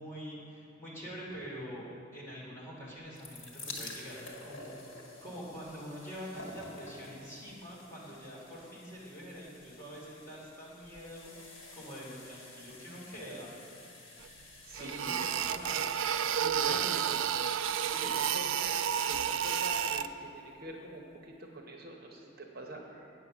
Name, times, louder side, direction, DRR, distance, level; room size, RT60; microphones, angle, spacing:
voice 1, 0.0-1.8 2.1-4.7 5.2-11.3 11.7-13.5 14.5-16.0 16.7-16.8 17.8-18.1, equal, 15° left, -7 dB, 2.6 m, -45 dB
sound 1, 2.9-19.9 20.7-20.8 21.0-21.1, left 2 dB, 75° left, 1.6 m, -51 dB
sound 2, 14.2-14.3 14.7-20.1, right 8 dB, 85° right, 0.4 m, -31 dB
voice 2, 14.6-15.2 16.4-17.2 18.0-18.7 19.0-23.1, right 2 dB, 50° right, 1 dB, 0.9 m, -45 dB
8.4 x 8.3 x 6.1 m, 2.6 s
head